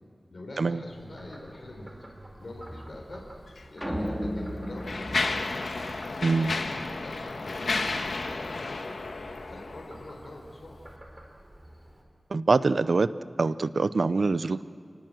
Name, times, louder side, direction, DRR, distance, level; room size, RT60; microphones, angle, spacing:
voice 1, 0.3-2.0 2.4-3.3 3.7-5.6 6.2-8.8 9.5-10.8, left 1 dB, 65° left, 0 dB, 4.4 m, -45 dB
Frog, 0.9-12.0, right 1 dB, 30° right, 3.8 m, -49 dB
Mechanisms, 3.5-3.6 4.4-10.1, left 3 dB, 85° left, 1.5 m, -32 dB
sound 1, 3.8-6.3, equal, 10° right, 3.1 m, -34 dB
voice 2, 6.2-6.5 12.3-13.1 13.4-14.6, right 3 dB, 75° right, 14 dB, 0.6 m, -24 dB
29.0 x 19.0 x 7.8 m, 2.3 s
wide cardioid pair, 65°, 0 cm